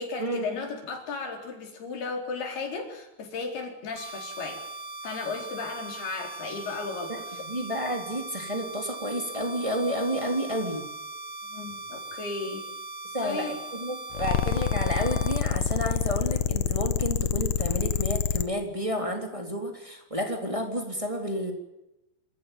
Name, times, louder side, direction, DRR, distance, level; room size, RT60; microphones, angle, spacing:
voice 1, 0.0-4.6 5.0-7.4 11.4-12.7 13.2-13.5, left 4 dB, 85° left, 3 dB, 6.2 m, -35 dB
sound 1, 4.0-15.4, right 2 dB, 80° right, 4.9 m, -40 dB
voice 2, 7.4-10.8 13.1-21.5, equal, 10° right, 3 dB, 3.3 m, -31 dB
sound 2, 14.1-18.5, left 10 dB, 70° left, 1.6 m, -26 dB
28.0 x 14.0 x 9.3 m, 0.93 s
omnidirectional pair, 4.4 m